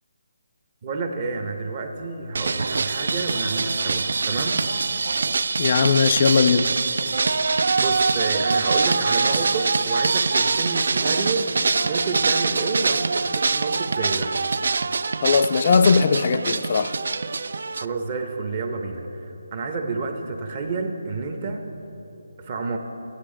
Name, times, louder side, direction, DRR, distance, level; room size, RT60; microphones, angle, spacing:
voice 1, 0.8-4.6 7.8-11.5 11.8-14.3 17.7-21.7 22.4-22.8, right 3 dB, 30° right, 0.7 m, -29 dB
sound 1, 2.3-17.9, right 4 dB, 65° right, 0.3 m, -24 dB
voice 2, 5.6-6.7 15.2-16.9, left 5 dB, 40° left, 0.3 m, -19 dB
14.5 x 9.9 x 3.8 m
hypercardioid pair, 165°, 0 cm